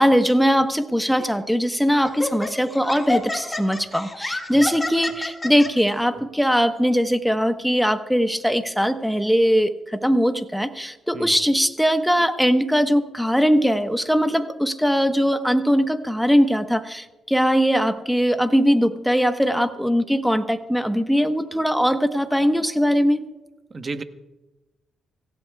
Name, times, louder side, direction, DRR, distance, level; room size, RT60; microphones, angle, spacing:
voice 1, 0.0-23.2, equal, ahead, 8 dB, 1.2 m, -20 dB
Laughter, 1.2-1.4 2.0-5.7, left 2 dB, 15° left, 2.1 m, -29 dB
voice 2, 23.7-24.0, right 3 dB, 35° right, 9 dB, 1.1 m, -32 dB
25.5 x 16.0 x 2.4 m, 1.1 s
cardioid pair, 90°, 0 cm